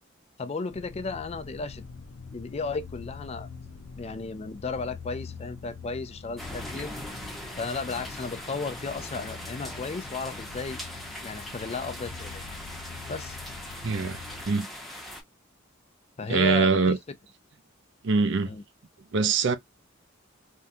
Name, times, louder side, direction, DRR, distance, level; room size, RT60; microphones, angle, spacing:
voice 1, 0.4-1.9 2.3-3.5 4.0-6.9 7.6-10.8 11.2-12.4 13.1-13.4 16.2-17.0 18.5-18.6, left 3 dB, 30° left, 0.4 m, -34 dB
sound 1, 0.7-14.5, left 5 dB, 85° left, 0.6 m, -44 dB
Tormenta eléctrica y lluvia Santiago de Chile, 6.4-15.2, left 1 dB, ahead, 0.8 m, -40 dB
voice 2, 13.8-14.7 16.3-17.0 18.0-18.5 19.1-19.6, right 4 dB, 60° right, 0.6 m, -23 dB
3.6 x 2.3 x 2.6 m
head